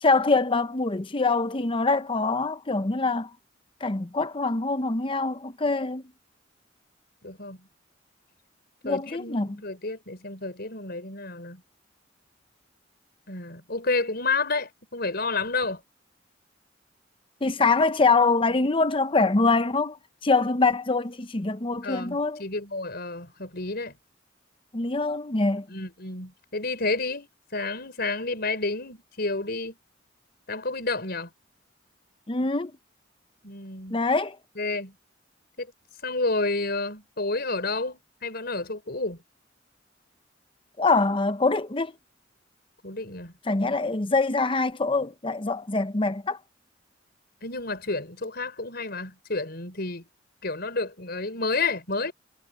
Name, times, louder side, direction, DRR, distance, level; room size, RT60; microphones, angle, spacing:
voice 1, 0.0-3.3 3.8-6.0 8.8-9.6 17.4-20.0 20.2-22.4 24.7-25.7 32.3-32.7 33.9-34.4 40.8-41.9 43.5-46.4, left 3 dB, 30° left, 0.8 m, -24 dB
voice 2, 7.2-7.7 8.8-11.6 13.3-15.8 21.8-24.0 25.7-29.8 30.5-31.3 33.4-34.0 34.6-34.9 35.6-35.7 36.0-39.2 42.8-43.3 47.4-50.0 50.4-52.1, left 3 dB, 55° left, 5.4 m, -30 dB
head